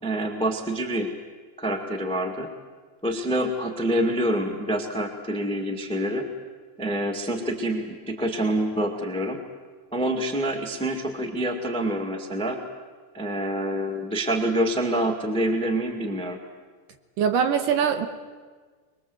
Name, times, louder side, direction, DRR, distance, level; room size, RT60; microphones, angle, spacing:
voice 1, 0.0-1.1 1.6-2.5 3.0-6.3 6.8-9.4 9.9-12.6 13.1-16.4, right 1 dB, 5° left, 4 dB, 0.6 m, -26 dB
voice 2, 17.2-18.1, right 7 dB, 70° right, 8 dB, 2.6 m, -22 dB
24.0 x 22.0 x 8.0 m, 1.5 s
omnidirectional pair, 4.4 m